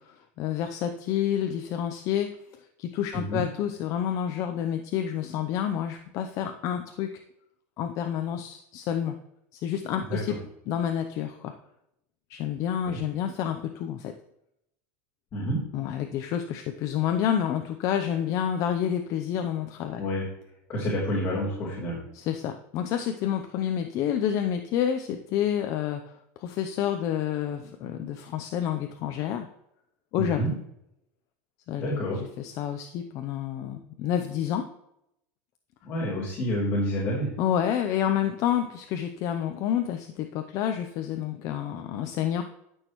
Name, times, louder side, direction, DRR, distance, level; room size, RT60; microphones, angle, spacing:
voice 1, 0.1-2.3 2.8-7.1 7.8-9.1 9.5-10.4 10.7-11.5 12.3-14.1 15.7-20.0 22.1-26.1 26.4-29.5 30.1-30.4 31.7-34.7 37.4-42.4, left 9 dB, 50° left, 6 dB, 0.7 m, -29 dB
voice 2, 15.3-15.6 20.0-20.2 20.7-22.0 30.2-30.5 31.8-32.2 35.8-37.3, equal, 30° left, -7 dB, 3.4 m, -28 dB
12.5 x 6.3 x 3.1 m, 0.80 s
supercardioid pair, 140°, 7 cm